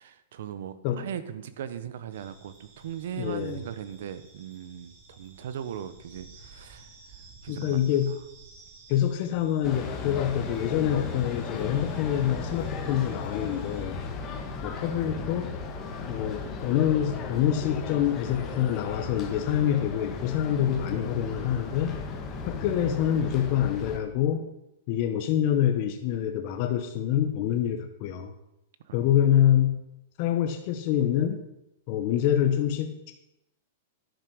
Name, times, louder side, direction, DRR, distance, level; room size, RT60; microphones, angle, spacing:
voice 1, 0.0-6.9 7.4-7.9 28.8-29.1, right 9 dB, 70° right, 13 dB, 1.1 m, -38 dB
sound 1, 2.1-13.8, right 3 dB, 45° right, 2.9 m, -54 dB
voice 2, 3.2-3.6 7.5-8.2 8.9-14.0 14.6-15.5 16.1-22.0 22.5-24.5 24.9-28.3 28.9-29.8 30.2-31.4 31.9-33.1, left 10 dB, 40° left, 5 dB, 1.0 m, -26 dB
sound 2, 9.6-24.0, left 4 dB, 25° left, 1.8 m, -36 dB
11.0 x 8.7 x 6.3 m, 0.86 s
supercardioid pair, 160°, 0 cm